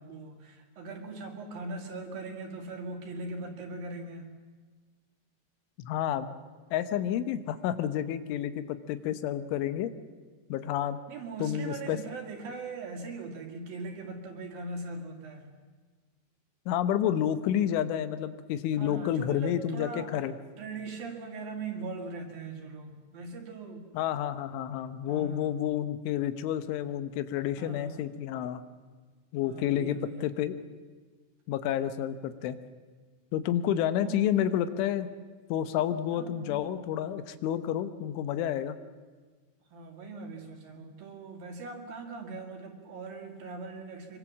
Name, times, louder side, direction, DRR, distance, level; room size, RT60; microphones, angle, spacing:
voice 1, 0.0-4.3 11.1-15.5 18.7-20.1 20.6-23.9 25.1-25.7 27.6-28.0 29.4-30.4 34.0-34.5 36.1-36.6 39.7-44.2, right 3 dB, 55° right, 3 dB, 3.6 m, -40 dB
voice 2, 5.8-6.4 6.7-9.9 10.5-11.0 11.4-12.0 16.7-20.4 24.0-28.6 29.3-30.6 31.5-32.6 33.3-35.1 35.5-38.8, left 10 dB, 85° left, 12 dB, 3.5 m, -30 dB
25.0 x 23.5 x 7.4 m, 1.4 s
omnidirectional pair, 5.4 m